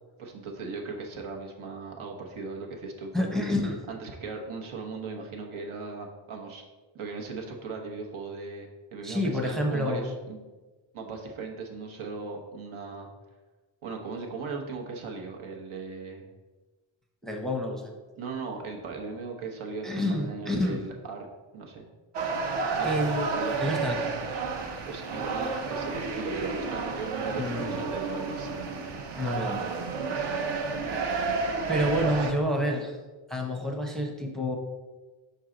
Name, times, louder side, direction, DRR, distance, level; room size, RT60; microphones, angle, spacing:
voice 1, 0.2-3.3 3.9-6.6 6.9-10.5 10.9-13.1 13.8-16.2 18.2-21.3 21.5-21.9 22.8-23.0 23.4-23.7 24.8-28.4, right 4 dB, 80° right, 1 dB, 1.1 m, -38 dB
voice 2, 3.1-3.8 9.0-10.1 17.2-17.9 19.8-20.8 22.8-24.4 27.3-27.7 29.2-29.8 31.7-33.0 33.3-34.6, equal, ahead, 2 dB, 0.6 m, -29 dB
sound 1, 22.1-32.3, right 4 dB, 60° right, 0.8 m, -31 dB
5.5 x 4.6 x 3.8 m, 1.3 s
wide cardioid pair, 125°, 48 cm